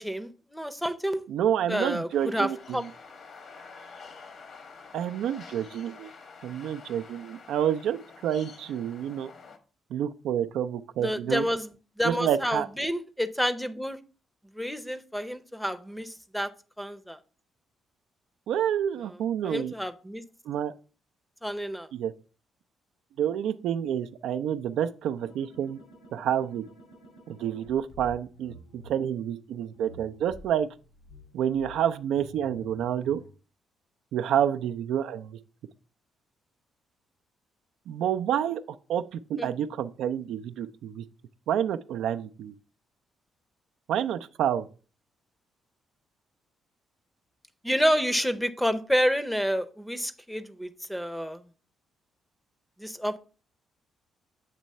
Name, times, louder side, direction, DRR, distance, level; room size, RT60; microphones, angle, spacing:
voice 1, 0.0-1.2 1.7-2.8 11.0-11.7 12.0-14.0 14.5-16.5 16.8-17.2 19.4-20.2 21.4-21.9 39.4-39.5 47.6-51.4 52.8-53.2, equal, 5° left, 0.6 m, -29 dB
voice 2, 1.3-2.9 4.9-6.1 6.4-9.3 9.9-11.5 12.0-12.7 18.5-19.7 20.5-20.7 21.9-22.1 23.2-25.8 26.1-26.6 27.3-30.7 31.3-33.2 34.1-35.4 37.9-41.1 41.5-42.5 43.9-44.7, right 9 dB, 80° right, 0.4 m, -28 dB
sound 1, 2.1-9.6, left 4 dB, 60° left, 1.1 m, -48 dB
sound 2, 25.2-28.9 29.7-33.3, left 1 dB, 85° left, 2.6 m, -50 dB
7.4 x 3.1 x 5.3 m
cardioid pair, 90°, 0 cm